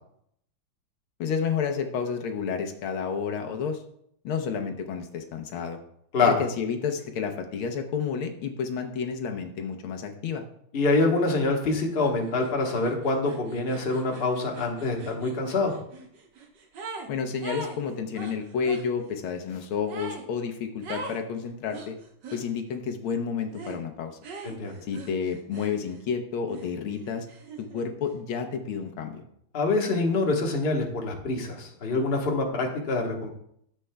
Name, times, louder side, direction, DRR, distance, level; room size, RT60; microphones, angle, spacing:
voice 1, 1.2-3.8 4.2-5.8 6.2-10.4 17.1-22.0 22.3-24.2 24.9-27.3 27.6-29.2, left 6 dB, 80° left, 4 dB, 1.8 m, -30 dB
voice 2, 10.7-15.7 24.4-24.8 29.5-33.3, left 3 dB, 35° left, 0 dB, 1.2 m, -25 dB
sound 1, 12.0-12.1 12.4-17.1 17.4-18.9 19.9-20.3 20.8-21.2 21.7-22.4 23.5-23.8 24.2-26.1 26.5-27.9, right 4 dB, 60° right, 1.6 m, -42 dB
13.5 x 7.5 x 2.3 m, 0.70 s
omnidirectional pair, 2.3 m